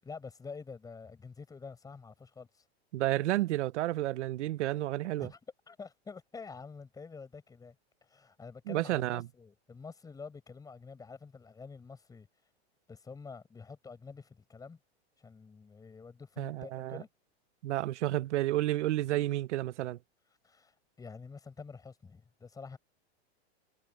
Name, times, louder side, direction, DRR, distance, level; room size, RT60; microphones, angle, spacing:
voice 1, 0.0-2.6 5.2-5.4 5.7-7.7 8.1-12.3 12.9-14.8 15.2-17.1 20.4-22.8, left 5 dB, 10° left, 6.5 m, -48 dB
voice 2, 2.9-5.3 8.7-9.2 16.4-17.0 17.6-20.0, right 15 dB, 90° right, 0.8 m, -31 dB
supercardioid pair, 165°, 34 cm